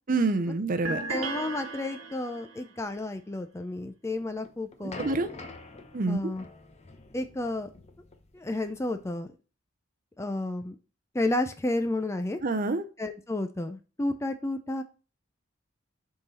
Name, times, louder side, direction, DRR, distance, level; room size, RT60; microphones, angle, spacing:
voice 1, 0.1-1.0 4.8-5.3 5.9-6.2 12.4-12.8, right 3 dB, 40° right, 9 dB, 0.6 m, -27 dB
sound 1, 0.8-2.6, right 3 dB, 70° right, 1.2 m, -35 dB
voice 2, 1.1-5.4 6.1-6.5 7.1-7.7 8.3-9.3 10.2-10.8 11.1-12.4 13.0-14.8, left 2 dB, 15° left, 8 dB, 0.4 m, -31 dB
sound 2, 4.2-9.1, left 3 dB, 30° left, 0.8 m, -47 dB
6.9 x 3.9 x 4.1 m, 0.35 s
head